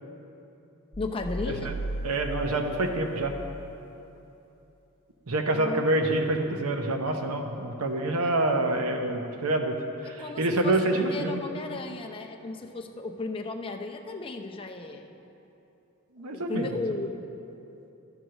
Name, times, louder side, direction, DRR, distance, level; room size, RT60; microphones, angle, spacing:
sound 1, 0.9-3.7, right 1 dB, 60° right, 2.2 m, -36 dB
voice 1, 1.0-1.8 5.6-6.1 9.3-9.4 10.2-15.1 16.3-17.2, left 3 dB, 25° left, 3 dB, 0.6 m, -35 dB
voice 2, 2.0-3.4 5.3-11.4 16.2-16.8, right 2 dB, 85° right, 4 dB, 0.9 m, -27 dB
12.0 x 4.7 x 6.4 m, 2.9 s
head